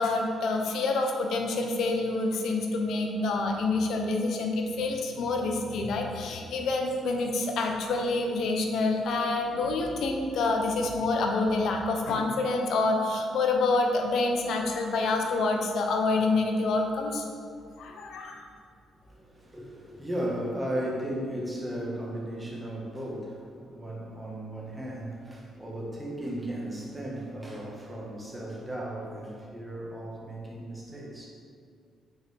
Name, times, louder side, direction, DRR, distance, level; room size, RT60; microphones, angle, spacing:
voice 1, 0.0-17.3 17.8-18.4, left 3 dB, 70° left, 2 dB, 0.8 m, -27 dB
voice 2, 19.0-31.3, right 1 dB, 15° right, -3 dB, 1.4 m, -36 dB
6.8 x 4.4 x 3.5 m, 2.2 s
cardioid pair, 90°, 0 cm